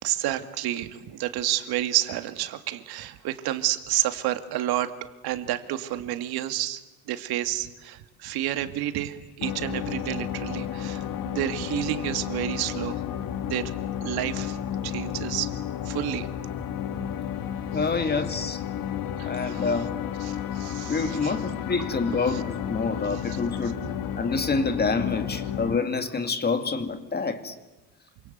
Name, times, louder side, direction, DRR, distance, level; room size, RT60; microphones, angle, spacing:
voice 1, 0.0-4.9 5.2-6.8 7.1-13.0 13.4-13.7 14.0-14.6 14.8-15.5 15.8-16.3 17.1-17.2 19.2-19.8 20.2-21.4 22.1-22.4 23.1-23.4 23.8-23.9, right 13 dB, 85° right, 2.4 m, -30 dB
sound 1, 9.4-25.8, left 10 dB, 65° left, 1.7 m, -32 dB
voice 2, 17.7-18.6 19.2-20.0 20.9-23.8 24.2-27.6, left 4 dB, 25° left, 2.2 m, -27 dB
28.0 x 26.0 x 8.1 m
cardioid pair, 145°, 37 cm